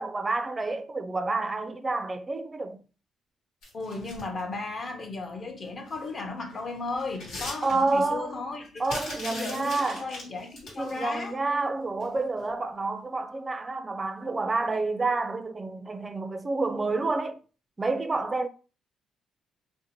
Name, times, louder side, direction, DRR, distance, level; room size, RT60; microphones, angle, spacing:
voice 1, 0.0-2.8 7.6-8.4 8.8-10.1 10.8-17.4 17.8-18.5, right 3 dB, 25° right, 0.4 m, -29 dB
sound 1, 3.6-4.4 5.9-6.1 6.5-8.1 8.8-11.0 12.0-12.2 12.5-12.6, left 2 dB, 85° left, 1.2 m, -39 dB
voice 2, 3.7-8.8 9.3-11.4, left 3 dB, 40° left, 0.7 m, -35 dB
2.6 x 2.1 x 2.9 m
cardioid pair, 90°, 0 cm